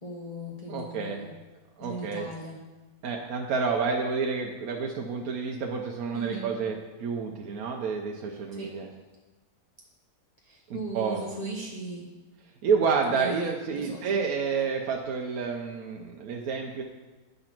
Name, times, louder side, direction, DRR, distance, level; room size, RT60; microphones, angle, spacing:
voice 1, 0.0-1.3 1.8-2.6 6.1-6.5 8.5-8.7 10.4-12.1 13.1-14.2, right 2 dB, 35° left, -2 dB, 0.7 m, -38 dB
voice 2, 0.7-1.3 1.8-2.3 3.0-8.9 10.7-11.2 12.6-16.8, right 5 dB, 65° right, 1 dB, 1.1 m, -29 dB
8.7 x 3.9 x 5.9 m, 1.2 s
omnidirectional pair, 1.7 m